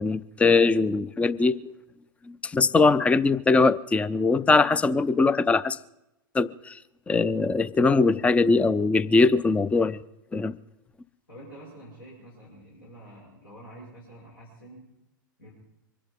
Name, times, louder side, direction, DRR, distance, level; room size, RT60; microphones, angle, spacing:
voice 1, 0.0-1.7 2.3-5.8 6.3-6.8 7.1-10.0 10.3-10.6, left 3 dB, 10° left, 0.5 m, -21 dB
voice 2, 11.3-14.9 15.4-15.5, right 1 dB, 80° left, 5.8 m, -47 dB
24.5 x 10.0 x 5.3 m
figure-of-eight pair, 90°, 12 cm